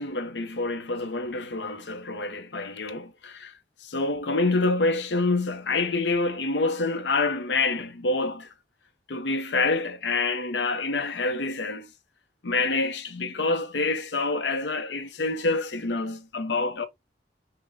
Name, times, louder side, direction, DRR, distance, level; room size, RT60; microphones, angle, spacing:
voice 1, 0.0-8.5 9.1-11.9 12.4-16.9, left 3 dB, 90° left, 0.7 m, -27 dB
5.8 x 2.2 x 3.4 m
head